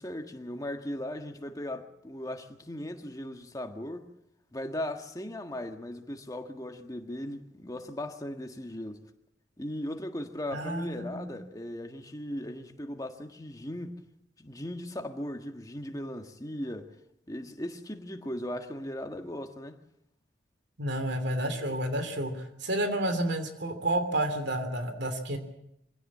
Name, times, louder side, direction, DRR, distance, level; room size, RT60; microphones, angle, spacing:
voice 1, 0.0-4.1 4.5-9.0 9.6-14.0 14.4-16.9 17.3-19.8, left 1 dB, 20° left, 1.7 m, -38 dB
voice 2, 10.5-11.3 20.8-25.4, right 1 dB, 65° right, 3.1 m, -30 dB
23.5 x 16.5 x 8.6 m
head